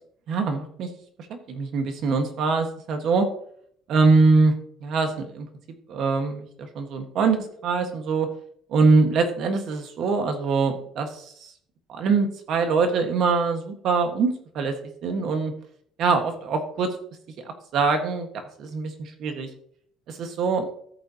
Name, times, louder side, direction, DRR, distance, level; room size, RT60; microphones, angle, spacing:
voice 1, 0.3-0.9 1.5-3.3 3.9-4.5 4.8-5.5 5.9-8.3 8.7-11.5 11.9-14.8 15.0-15.5 16.0-16.9 17.7-18.3 18.6-19.5 20.1-20.7, right 4 dB, 50° right, 6 dB, 1.5 m, -23 dB
13.5 x 8.3 x 2.9 m, 0.63 s
cardioid pair, 175°, 0 cm